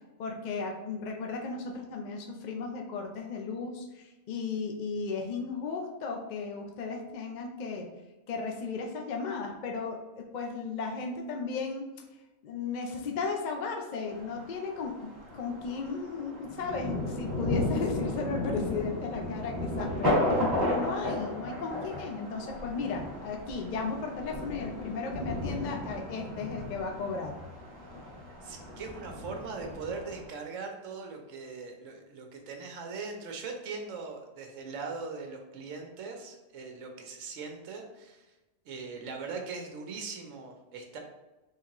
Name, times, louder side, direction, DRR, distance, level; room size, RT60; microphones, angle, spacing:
voice 1, 0.2-7.9 8.3-11.8 12.4-27.3, left 4 dB, 60° left, 2 dB, 0.4 m, -35 dB
Thunder, 14.1-30.3, left 1 dB, 15° right, 1.4 m, -34 dB
voice 2, 28.4-38.3 38.7-41.0, right 4 dB, 75° right, 3 dB, 1.1 m, -40 dB
3.7 x 3.2 x 2.9 m, 1.1 s
omnidirectional pair, 1.4 m